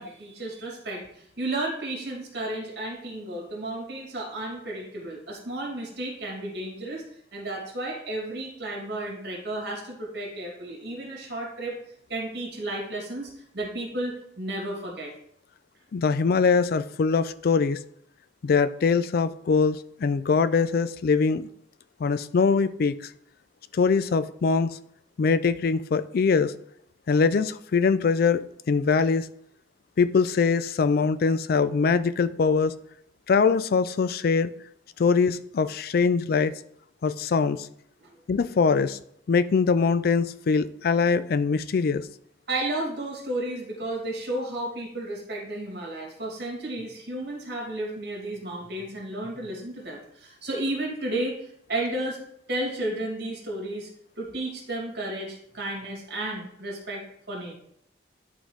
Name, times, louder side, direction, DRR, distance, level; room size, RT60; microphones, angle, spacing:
voice 1, 0.0-7.0 7.3-11.8 12.1-15.1 42.5-52.2 52.5-53.9 54.2-57.5, right 1 dB, 60° right, -2 dB, 2.5 m, -33 dB
voice 2, 15.9-17.8 18.4-21.5 22.0-23.1 23.7-24.8 25.2-26.5 27.1-29.3 30.0-32.7 33.3-34.5 35.0-36.5 37.0-37.7 38.3-39.0 39.3-42.1, left 5 dB, 55° left, 15 dB, 0.4 m, -23 dB
11.0 x 4.0 x 3.2 m, 0.70 s
head